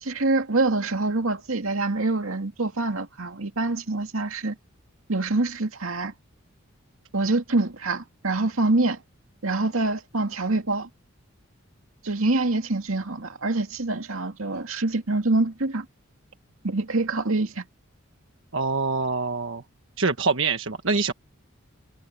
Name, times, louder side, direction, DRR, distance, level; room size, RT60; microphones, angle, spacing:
voice 1, 0.0-4.6 5.1-6.1 7.1-9.0 9.4-10.9 12.0-15.9 16.6-17.6, right 2 dB, 90° right, 2.3 m, -25 dB
voice 2, 18.5-19.6 20.0-21.1, right 4 dB, 70° right, 1.4 m, -25 dB
head